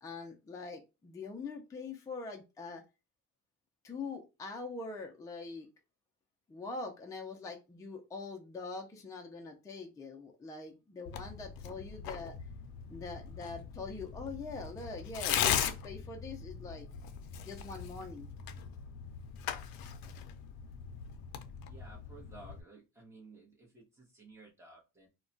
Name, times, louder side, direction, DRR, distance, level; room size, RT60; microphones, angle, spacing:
voice 1, 0.0-2.8 3.8-5.7 6.5-12.4 12.9-16.9 17.4-18.3, left 3 dB, 10° left, 2 dB, 0.4 m, -43 dB
Tearing, 11.0-22.6, left 9 dB, 85° left, 0.5 m, -39 dB
voice 2, 21.7-25.1, right 2 dB, 10° right, -1 dB, 0.8 m, -55 dB
2.2 x 2.2 x 3.8 m, 0.27 s
cardioid pair, 155°, 35 cm